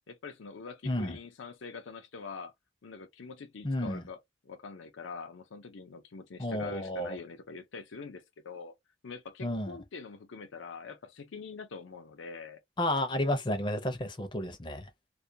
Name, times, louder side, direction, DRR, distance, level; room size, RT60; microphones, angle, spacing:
voice 1, 0.1-2.5 2.8-8.7 9.0-12.6, left 4 dB, 80° left, 0.5 m, -44 dB
voice 2, 0.8-1.2 3.6-4.0 6.4-7.2 9.4-9.8 12.8-14.9, left 1 dB, 25° left, 0.5 m, -31 dB
2.3 x 2.1 x 2.7 m
head